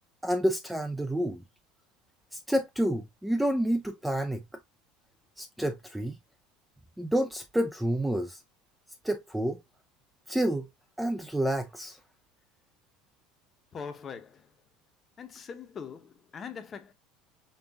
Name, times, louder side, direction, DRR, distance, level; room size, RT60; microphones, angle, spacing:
voice 1, 0.2-1.4 2.3-4.5 5.4-6.2 7.0-8.4 9.0-9.6 10.3-10.7 11.0-12.0, right 1 dB, 5° right, 0.4 m, -29 dB
voice 2, 13.7-14.6 15.2-16.9, left 6 dB, 25° left, 0.8 m, -42 dB
5.4 x 2.4 x 3.4 m
cardioid pair, 150°, 0 cm